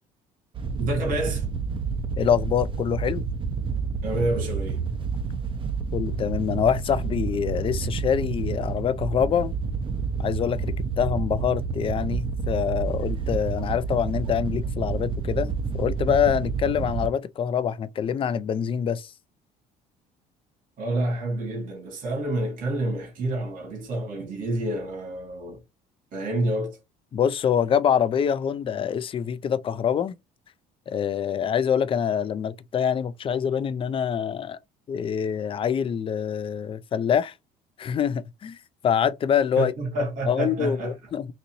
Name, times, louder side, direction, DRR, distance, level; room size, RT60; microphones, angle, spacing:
Wind / Boat Water vehicle, 0.5-17.1, right 5 dB, 35° right, 0.6 m, -29 dB
voice 1, 0.8-1.5 4.0-4.8 20.8-25.6 26.1-26.8 39.6-40.9, right 1 dB, 60° right, 2.0 m, -28 dB
voice 2, 2.2-3.2 5.9-9.5 10.2-19.1 27.1-30.1 30.9-34.6 34.9-37.3 37.8-38.6 38.8-39.7 40.3-41.3, left 8 dB, 35° left, 0.4 m, -25 dB
4.0 x 2.6 x 2.9 m
cardioid pair, 100°, 16 cm